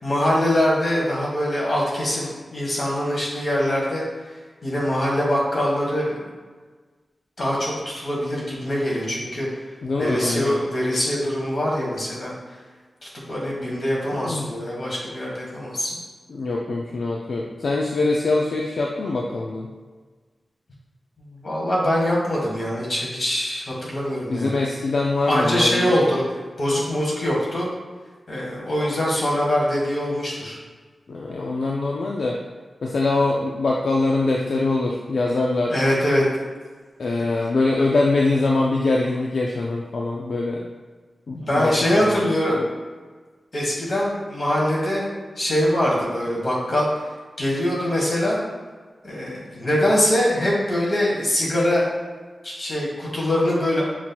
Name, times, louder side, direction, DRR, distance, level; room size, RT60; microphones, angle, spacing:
voice 1, 0.0-4.0 4.6-6.3 7.4-9.5 10.0-12.3 13.3-16.0 21.2-24.6 25.3-26.2 26.6-27.7 28.3-30.6 35.7-36.3 41.3-42.6 43.5-45.1 45.4-46.9 47.4-48.4 49.0-51.8 52.4-53.8, equal, 45° left, -5 dB, 1.2 m, -23 dB
voice 2, 9.8-10.5 14.2-14.5 16.3-19.7 24.3-26.0 31.1-32.4 32.8-35.8 37.0-40.7 41.3-42.3, left 2 dB, 65° left, -1 dB, 0.3 m, -23 dB
5.9 x 2.8 x 2.2 m, 1.4 s
wide cardioid pair, 145°, 0 cm